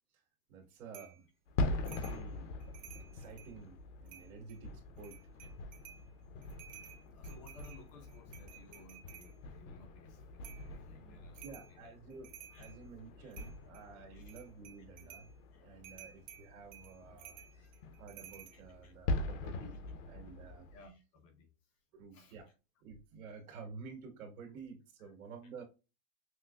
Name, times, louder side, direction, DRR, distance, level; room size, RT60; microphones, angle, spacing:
voice 1, 0.5-1.3 1.7-2.7 2.9-5.2 10.9-12.3 12.6-15.3 15.6-17.7 18.0-19.7 20.0-20.7 21.9-22.5 22.8-25.6, right 5 dB, 90° right, 1.9 m, -51 dB
sound 1, 0.9-1.2 1.8-2.2 2.6-3.5 4.1-4.6 5.0-6.0 6.4-9.3 10.4-10.7 11.3-11.7 12.1-12.8 13.3-13.8 14.2-15.3 15.8-18.6, right 10 dB, 35° right, 0.5 m, -54 dB
sound 2, 1.5-20.9, left 2 dB, 65° left, 0.7 m, -43 dB
voice 2, 7.1-11.8 12.5-12.7 13.2-13.3 14.1-14.3 15.5-16.2 17.4-17.8 18.5-18.9 20.7-21.8 22.1-22.4 25.0-25.1, left 2 dB, 25° left, 0.4 m, -60 dB
6.0 x 2.0 x 2.2 m
supercardioid pair, 170°, 41 cm